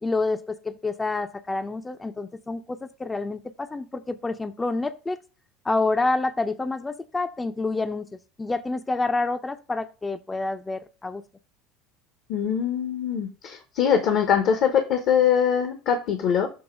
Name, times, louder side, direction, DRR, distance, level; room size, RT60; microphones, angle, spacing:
voice 1, 0.0-5.2 5.6-8.1 8.4-11.2, left 3 dB, 15° left, 10 dB, 0.6 m, -28 dB
voice 2, 12.3-16.5, left 8 dB, 60° left, 7 dB, 1.0 m, -22 dB
7.1 x 3.0 x 6.0 m, 0.35 s
hypercardioid pair, 75°, 0 cm